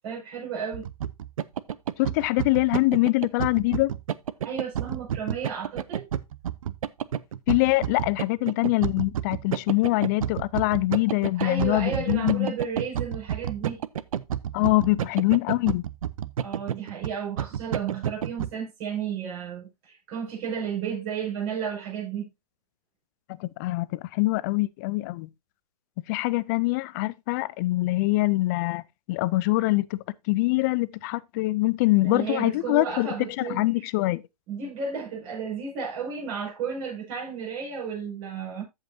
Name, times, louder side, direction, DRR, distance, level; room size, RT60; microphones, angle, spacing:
voice 1, 0.0-0.9 4.4-6.1 11.4-13.8 16.4-22.3 32.0-33.7 34.5-38.6, right 6 dB, 40° right, 5.9 m, -33 dB
sound 1, 0.7-18.5, right 9 dB, 60° right, 0.7 m, -30 dB
voice 2, 2.0-3.9 7.5-12.5 14.5-15.8 23.4-25.3 26.1-28.8 29.1-34.2, left 21 dB, 30° left, 0.4 m, -24 dB
14.5 x 5.6 x 2.7 m
hypercardioid pair, 130°, 20 cm